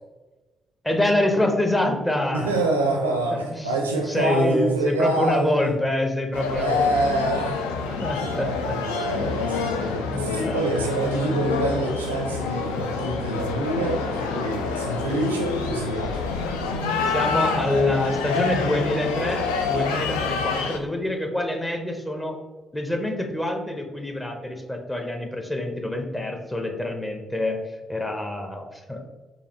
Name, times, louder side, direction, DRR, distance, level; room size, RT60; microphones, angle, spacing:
voice 1, 0.8-2.7 3.5-6.9 8.0-8.7 10.0-10.7 17.1-22.4 22.7-27.6 27.9-29.0, left 1 dB, 15° left, 3 dB, 0.7 m, -26 dB
voice 2, 2.3-5.7 6.5-7.6 7.9-8.0 8.4-16.4, right 1 dB, 80° right, 2 dB, 0.4 m, -26 dB
sound 1, 6.3-20.8, left 4 dB, 75° left, 0.3 m, -27 dB
4.0 x 2.9 x 2.8 m, 1.2 s
figure-of-eight pair, 40°, 0 cm